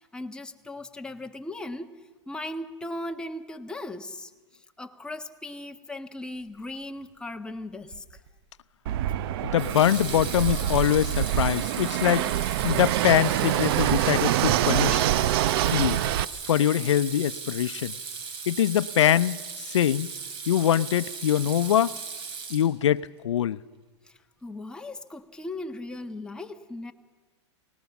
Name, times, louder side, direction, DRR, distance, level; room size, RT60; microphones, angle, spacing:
voice 1, 0.0-1.9 2.3-4.3 4.8-8.2 24.1-26.9, left 1 dB, 5° left, 1.3 m, -38 dB
Water tap faucet / Sink (filling or washing), 7.9-8.3 9.6-23.0, right 5 dB, 35° right, 3.7 m, -37 dB
Fixed-wing aircraft airplane, 8.9-16.2, right 12 dB, 55° right, 0.7 m, -25 dB
voice 2, 9.5-12.3 12.6-15.1 15.7-16.0 16.5-17.9 18.5-19.4 19.7-20.1 20.5-22.0 22.5-23.6, left 10 dB, 85° left, 0.7 m, -23 dB
25.0 x 19.5 x 7.1 m
hypercardioid pair, 130°, 15 cm